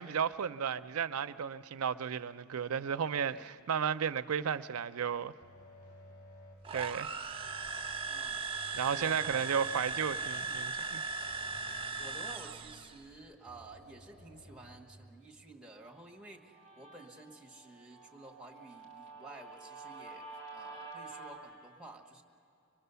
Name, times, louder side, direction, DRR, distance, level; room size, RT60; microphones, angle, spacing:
voice 1, 0.0-5.3 6.7-7.2 8.7-11.0, right 7 dB, 85° right, 0.5 m, -33 dB
sound 1, 5.4-6.7 7.3-8.6 9.1-10.6 11.1-13.0 13.4-14.8, equal, 45° left, 4.9 m, -56 dB
sound 2, 6.6-13.0, right 4 dB, 25° right, 0.5 m, -38 dB
voice 2, 8.1-8.5 8.9-9.8 10.4-10.6 12.0-20.3 20.5-22.2, right 2 dB, 5° right, 1.4 m, -52 dB
Guitar, 15.9-21.4, right 3 dB, 20° left, 3.8 m, -50 dB
24.0 x 22.0 x 6.9 m
head